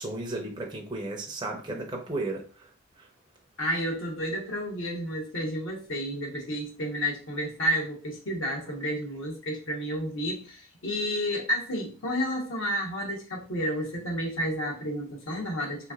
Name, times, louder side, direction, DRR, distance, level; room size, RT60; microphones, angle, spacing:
voice 1, 0.0-2.7, right 2 dB, 20° right, 0.5 m, -34 dB
voice 2, 3.6-15.9, equal, 65° left, 1.1 m, -31 dB
3.6 x 3.0 x 2.4 m
head